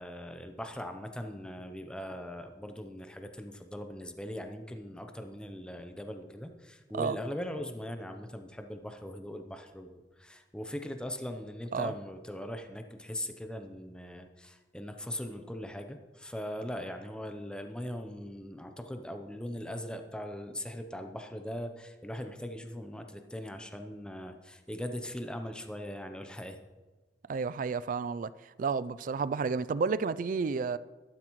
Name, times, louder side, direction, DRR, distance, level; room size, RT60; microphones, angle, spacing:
voice 1, 0.0-26.6, equal, 5° left, 0.7 m, -40 dB
voice 2, 27.3-28.3 28.6-30.8, right 5 dB, 50° right, 0.3 m, -31 dB
13.0 x 12.0 x 3.1 m
head